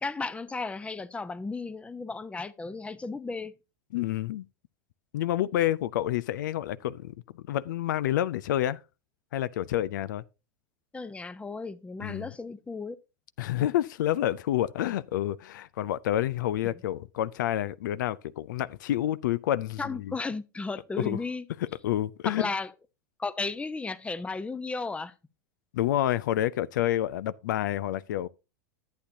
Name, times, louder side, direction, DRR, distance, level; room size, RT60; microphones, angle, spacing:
voice 1, 0.0-3.5 10.9-13.0 16.7-16.8 19.8-21.5 22.2-22.7 23.2-25.1, left 3 dB, 10° left, 0.7 m, -34 dB
voice 2, 3.9-4.5 5.1-8.8 9.3-10.2 12.0-12.3 13.4-20.1 21.0-21.2 21.6-22.5 25.7-28.3, left 13 dB, 75° left, 0.4 m, -29 dB
11.5 x 8.4 x 2.7 m
hypercardioid pair, 100°, 10 cm